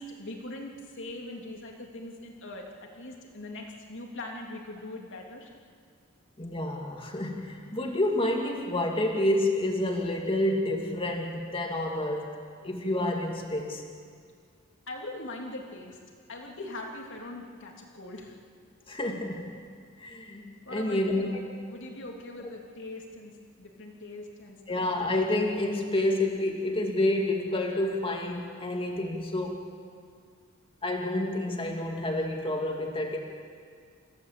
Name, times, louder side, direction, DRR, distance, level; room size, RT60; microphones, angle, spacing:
voice 1, 0.0-5.5 14.9-16.0 16.3-18.4 20.6-21.4 21.7-24.8, left 2 dB, 65° left, 0 dB, 3.1 m, -41 dB
voice 2, 6.4-12.3 12.6-13.8 18.9-19.5 20.0-21.4 24.7-29.7 30.8-33.2, left 1 dB, 25° left, 1 dB, 2.4 m, -29 dB
28.5 x 16.0 x 8.7 m, 2.1 s
head